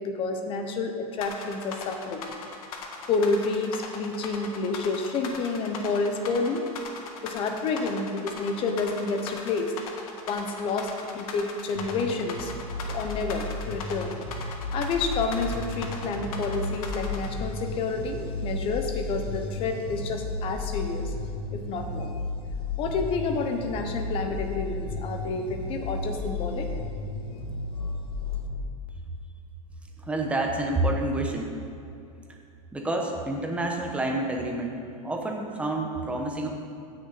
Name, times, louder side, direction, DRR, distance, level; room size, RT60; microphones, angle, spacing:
voice 1, 0.0-2.3 3.1-6.6 7.2-9.7 10.3-12.5 12.9-14.2 14.7-21.1 21.5-22.1 22.8-26.7, left 3 dB, 30° left, 5 dB, 1.0 m, -29 dB
sound 1, 1.2-17.3, left 5 dB, 65° left, 1.6 m, -38 dB
sound 2, 11.7-28.6, left 2 dB, 90° left, 1.6 m, -33 dB
voice 2, 30.0-31.5 32.7-36.5, right 2 dB, 5° right, 1 dB, 1.0 m, -28 dB
17.0 x 6.5 x 4.2 m, 2.6 s
supercardioid pair, 155°, 19 cm